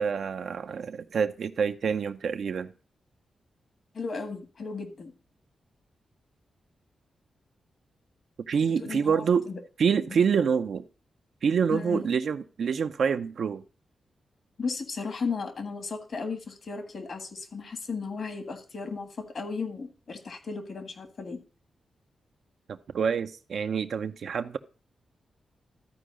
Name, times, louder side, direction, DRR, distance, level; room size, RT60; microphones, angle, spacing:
voice 1, 0.0-2.7 8.5-9.4 9.8-10.8 11.4-13.6 22.7-24.6, right 6 dB, 70° right, 0.6 m, -27 dB
voice 2, 3.9-5.1 8.8-9.6 11.7-12.1 14.6-19.1 19.3-21.4, left 4 dB, 60° left, 1.7 m, -35 dB
13.0 x 4.6 x 5.0 m
cardioid pair, 65°, 0 cm